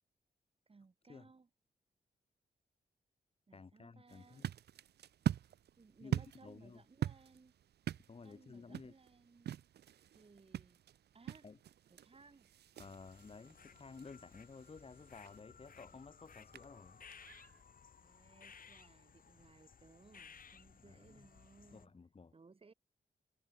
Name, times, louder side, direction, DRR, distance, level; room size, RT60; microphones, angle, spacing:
voice 1, 0.7-1.5 3.5-4.5 5.8-7.5 8.2-9.5 10.1-10.8 11.1-11.5 11.9-12.5 18.0-21.9 22.3-22.7, right 4 dB, 35° right, 2.9 m, -62 dB
voice 2, 3.5-4.5 6.0-6.8 8.1-8.9 11.4-11.6 12.8-17.0 20.8-21.3 21.7-22.3, left 4 dB, 35° left, 1.4 m, -54 dB
sound 1, 4.1-17.6, right 10 dB, 75° right, 0.6 m, -44 dB
sound 2, 12.8-21.9, left 6 dB, 55° left, 2.5 m, -60 dB
cardioid pair, 90°, 17 cm